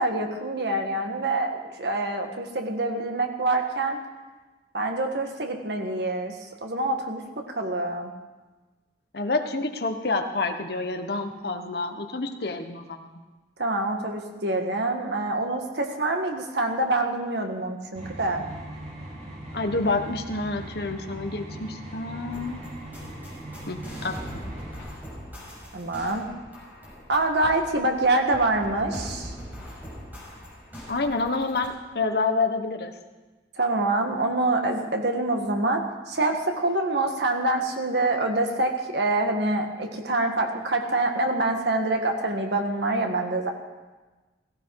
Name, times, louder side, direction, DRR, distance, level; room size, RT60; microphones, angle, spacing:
voice 1, 0.0-1.5 1.8-4.0 4.7-6.3 6.6-7.2 7.5-8.1 13.6-18.4 25.7-26.3 27.1-29.3 33.6-43.5, right 2 dB, 70° right, 4 dB, 1.8 m, -26 dB
voice 2, 9.1-13.1 19.5-22.6 23.7-24.2 30.9-32.9, left 3 dB, 60° left, 5 dB, 1.3 m, -28 dB
sound 1, 17.9-24.8, right 1 dB, 40° right, 6.4 m, -40 dB
sound 2, 22.3-31.7, equal, 10° right, 5.9 m, -41 dB
16.5 x 15.5 x 4.9 m, 1.2 s
head